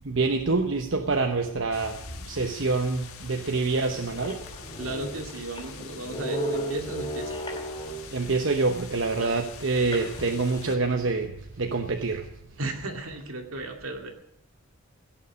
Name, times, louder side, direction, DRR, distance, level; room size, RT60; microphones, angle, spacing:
voice 1, 0.0-2.0 2.3-4.4 8.1-11.3 11.6-12.3, right 3 dB, 65° right, 5 dB, 1.0 m, -26 dB
sound 1, 1.7-10.8, left 5 dB, 90° left, 1.7 m, -45 dB
sound 2, 3.2-3.3 3.9-4.0 4.2-8.2 9.9-11.0, right 1 dB, 20° left, 4.1 m, -35 dB
voice 2, 4.8-7.4 9.2-9.4 12.6-14.1, right 2 dB, 80° right, 4 dB, 2.3 m, -35 dB
17.0 x 7.0 x 9.7 m, 0.80 s
head